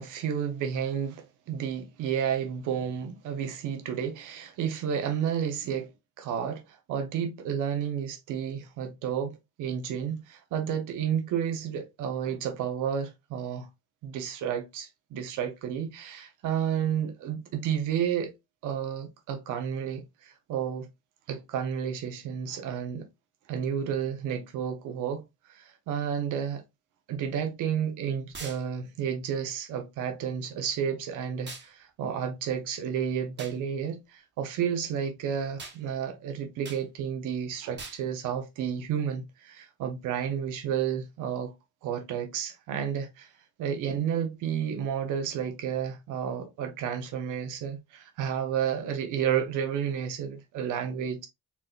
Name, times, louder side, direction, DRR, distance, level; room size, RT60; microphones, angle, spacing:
voice 1, 0.0-5.9 6.2-13.7 14.0-18.3 18.6-20.9 21.3-23.1 23.5-26.6 27.1-41.5 41.8-43.3 43.6-51.3, right 8 dB, 90° right, 1.1 m, -31 dB
sound 1, 28.3-28.6 31.5-31.7 33.4-33.6 35.6-35.8 36.6-36.8 37.8-38.0, right 4 dB, 35° right, 1.4 m, -41 dB
4.3 x 3.6 x 2.4 m
cardioid pair, 90°, 30 cm